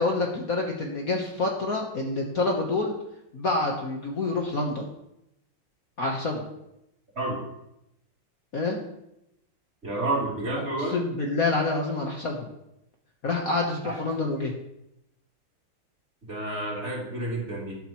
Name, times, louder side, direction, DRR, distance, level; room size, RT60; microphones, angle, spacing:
voice 1, 0.0-2.9 3.3-4.9 6.0-6.4 8.5-8.8 10.9-12.5 13.2-14.5, left 3 dB, 50° left, 0 dB, 1.5 m, -27 dB
voice 2, 9.8-11.0 13.8-14.0 14.3-14.5 16.3-17.8, right 1 dB, 30° right, -5 dB, 3.7 m, -30 dB
13.0 x 11.5 x 3.1 m, 0.84 s
omnidirectional pair, 2.2 m